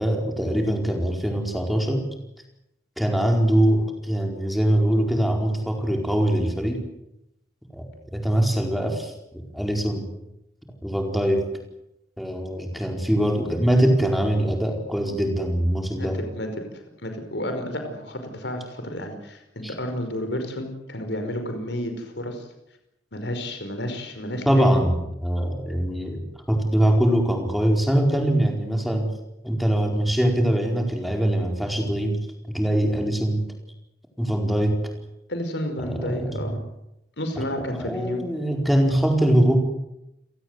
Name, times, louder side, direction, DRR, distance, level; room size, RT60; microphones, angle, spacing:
voice 1, 0.0-2.1 3.0-6.8 7.7-7.9 8.1-10.1 10.8-11.5 12.2-16.2 19.6-19.7 24.5-26.2 26.5-29.1 29.4-33.5 34.2-34.9 35.8-36.4 37.4-39.6, right 1 dB, ahead, 2 dB, 4.7 m, -23 dB
voice 2, 16.0-16.5 16.7-22.5 23.1-24.7 35.3-36.6 37.2-38.2, left 1 dB, 70° left, 6 dB, 5.1 m, -31 dB
29.5 x 18.5 x 8.1 m, 0.87 s
head